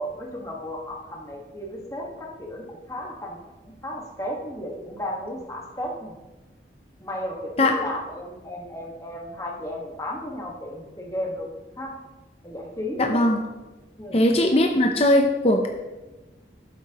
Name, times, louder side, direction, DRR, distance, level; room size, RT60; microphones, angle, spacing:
voice 1, 0.0-3.4 3.6-6.2 7.0-11.5 11.8-12.0 12.4-13.2 14.0-14.3, equal, 20° left, -1 dB, 1.5 m, -34 dB
voice 2, 13.0-13.4 14.1-15.7, left 1 dB, 35° left, 3 dB, 0.6 m, -19 dB
12.5 x 7.5 x 3.0 m, 1.1 s
head